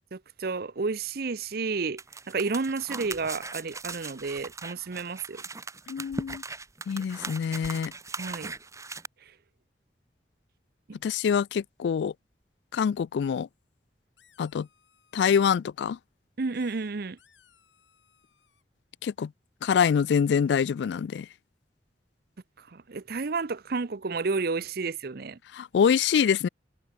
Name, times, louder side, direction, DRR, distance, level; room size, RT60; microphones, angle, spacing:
voice 1, 0.1-2.0 2.3-5.4 8.2-8.5 10.9-11.0 16.4-17.2 22.6-25.4, right 4 dB, 55° right, 0.7 m, -31 dB
sound 1, 2.0-9.1, right 3 dB, 15° right, 1.6 m, -39 dB
voice 2, 5.9-6.4 6.9-7.9 11.0-12.1 12.7-13.5 14.4-14.7 15.1-16.0 19.0-19.3 19.6-21.3 25.5-26.5, left 7 dB, 70° left, 0.3 m, -25 dB
sound 2, 13.5-13.6 14.2-15.5 16.5-18.6, left 8 dB, 85° left, 5.2 m, -63 dB
head